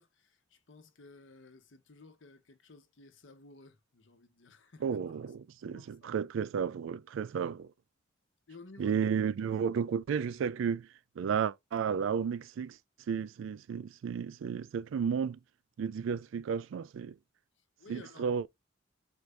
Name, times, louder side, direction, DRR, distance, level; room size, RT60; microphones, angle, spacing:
voice 1, 0.0-5.2 5.6-6.2 8.5-9.0 17.8-18.4, left 3 dB, 65° left, 0.8 m, -55 dB
voice 2, 4.8-7.7 8.8-10.9 11.2-12.8 13.1-15.4 15.8-17.1 17.9-18.5, right 7 dB, 70° right, 0.3 m, -33 dB
4.4 x 2.6 x 3.1 m
head